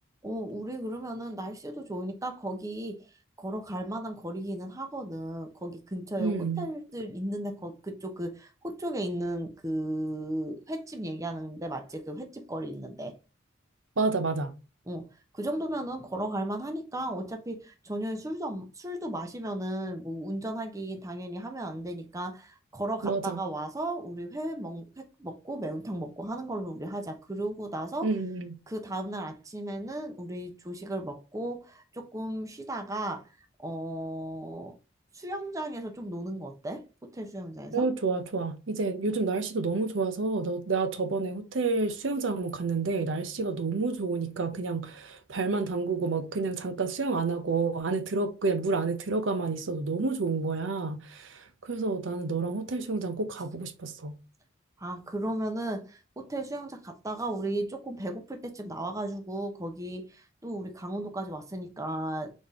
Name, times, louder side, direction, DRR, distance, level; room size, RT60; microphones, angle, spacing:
voice 1, 0.2-3.0 3.4-13.1 14.9-15.0 15.3-28.1 28.7-33.3 33.6-34.8 35.1-36.9 37.1-37.8 54.8-62.3, right 1 dB, 15° right, 0.7 m, -35 dB
voice 2, 6.2-6.7 14.0-14.6 23.0-23.4 28.0-28.5 37.7-54.2, right 3 dB, 75° right, 0.7 m, -29 dB
4.1 x 3.5 x 3.5 m
head